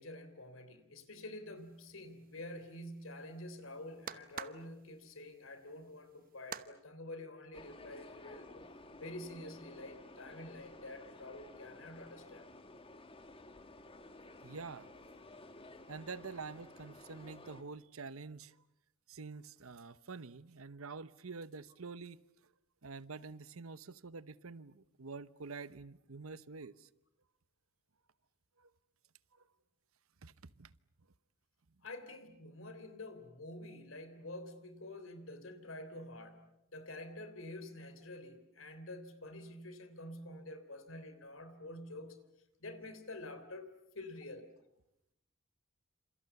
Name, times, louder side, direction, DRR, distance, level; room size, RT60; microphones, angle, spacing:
voice 1, 0.0-8.7 9.0-12.4 31.8-42.2 42.6-44.5, left 1 dB, 70° left, 3.4 m, -48 dB
sound 1, 1.6-6.7, right 7 dB, 45° right, 1.0 m, -50 dB
sound 2, 7.5-17.6, left 2 dB, 25° left, 2.1 m, -54 dB
voice 2, 14.4-14.9 15.9-18.6 19.1-22.2 22.8-26.9 28.6-28.7 30.2-30.7, right 4 dB, 90° right, 0.9 m, -47 dB
29.0 x 27.5 x 7.0 m
head